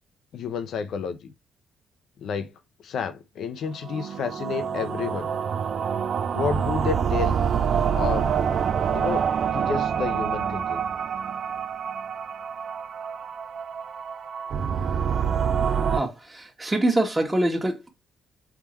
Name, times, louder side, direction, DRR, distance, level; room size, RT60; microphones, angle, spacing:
voice 1, 0.3-1.3 2.2-2.5 2.8-5.3 6.3-7.4 7.9-8.3 8.9-10.8, left 6 dB, 60° left, 0.6 m, -30 dB
sound 1, 3.8-16.0, right 7 dB, 50° right, 0.4 m, -26 dB
voice 2, 15.9-17.9, right 1 dB, 15° right, 1.3 m, -24 dB
4.0 x 3.6 x 3.1 m
hypercardioid pair, 45°, 0 cm